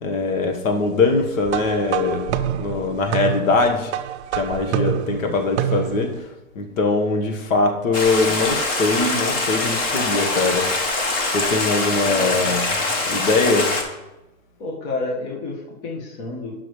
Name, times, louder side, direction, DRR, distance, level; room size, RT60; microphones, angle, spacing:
voice 1, 0.0-3.9 4.3-10.7 11.3-12.8 13.0-13.7, left 3 dB, 70° left, 4 dB, 1.4 m, -22 dB
sound 1, 1.5-6.2, right 11 dB, 55° right, 0.5 m, -27 dB
voice 2, 4.7-5.1 12.0-12.5 14.6-16.5, left 2 dB, 35° left, -3 dB, 1.6 m, -30 dB
Stream, 7.9-13.8, left 3 dB, 20° left, 0.8 m, -23 dB
10.0 x 6.1 x 3.2 m, 0.98 s
hypercardioid pair, 150°, 42 cm